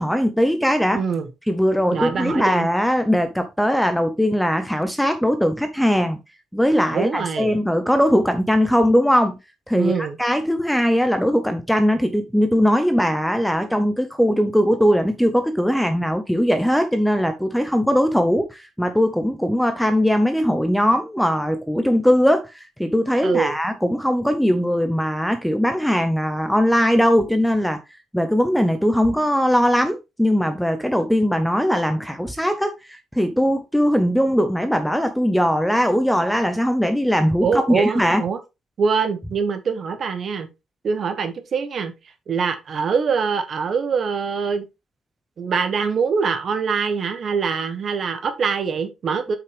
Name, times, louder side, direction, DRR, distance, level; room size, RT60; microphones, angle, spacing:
voice 1, 0.0-1.0 1.5-6.2 6.5-9.4 9.7-9.9 10.2-27.8 28.1-32.7 33.2-38.2, equal, ahead, 0.6 m, -20 dB
voice 2, 0.9-1.3 1.9-2.7 6.9-7.6 9.7-10.2 23.2-23.6 37.4-38.4 38.8-40.5 40.8-41.9 42.3-44.7 45.4-49.4, right 5 dB, 35° right, 1.2 m, -23 dB
8.1 x 5.7 x 3.4 m
cardioid pair, 175°, 0 cm